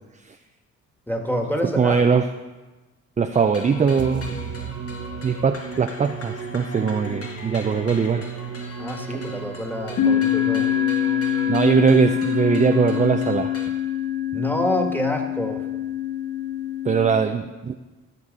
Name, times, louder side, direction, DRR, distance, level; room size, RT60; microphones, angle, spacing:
voice 1, 1.1-2.0 8.8-10.7 14.3-15.6, left 1 dB, 5° left, 3 dB, 1.8 m, -27 dB
voice 2, 1.8-2.3 3.2-4.3 5.2-8.3 11.5-13.5 16.9-17.8, right 5 dB, 25° right, 6 dB, 0.5 m, -20 dB
sound 1, 3.3-13.7, left 1 dB, 50° left, 1.8 m, -39 dB
sound 2, 3.6-13.4, right 6 dB, 50° right, 1.0 m, -35 dB
sound 3, 8.6-9.1 9.9-17.1, left 10 dB, 80° left, 2.2 m, -25 dB
14.5 x 6.7 x 5.4 m, 1.2 s
cardioid pair, 90°, 30 cm